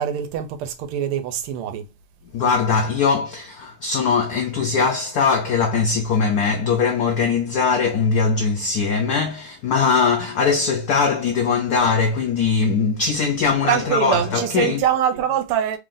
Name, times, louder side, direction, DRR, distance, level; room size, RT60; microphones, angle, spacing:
voice 1, 0.0-1.9 13.6-15.8, right 10 dB, 90° right, 1.6 m, -23 dB
voice 2, 2.3-14.8, left 5 dB, 75° left, 0.9 m, -21 dB
3.7 x 2.5 x 3.7 m
omnidirectional pair, 2.4 m